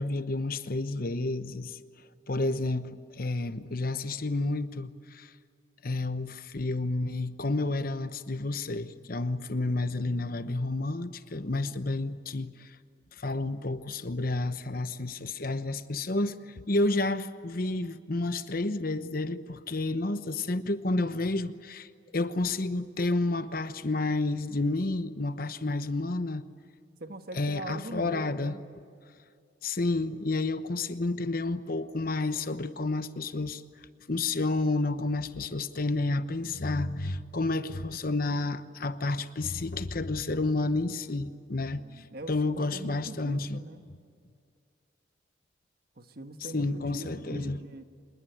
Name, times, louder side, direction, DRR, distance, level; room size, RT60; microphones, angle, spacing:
voice 1, 0.0-1.8 2.3-5.3 5.8-12.8 13.1-26.4 27.4-28.5 29.6-33.6 34.1-43.6 46.5-47.6, left 2 dB, 50° left, 1.0 m, -30 dB
voice 2, 27.0-28.6 41.5-43.8 46.0-47.8, right 2 dB, 55° right, 1.4 m, -42 dB
26.5 x 21.0 x 9.3 m
head